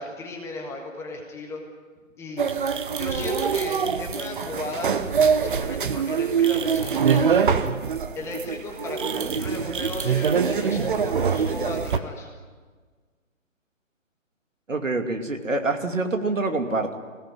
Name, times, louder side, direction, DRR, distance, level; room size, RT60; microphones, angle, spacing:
voice 1, 0.0-1.6 2.2-2.4 2.9-5.0 5.4-7.7 8.1-12.3, left 2 dB, 5° left, 1 dB, 1.5 m, -35 dB
sound 1, 2.4-12.0, right 6 dB, 40° right, 1.1 m, -24 dB
voice 2, 14.7-16.9, right 3 dB, 70° right, 5 dB, 2.8 m, -26 dB
24.5 x 17.0 x 9.4 m, 1.5 s
figure-of-eight pair, 140°, 40 cm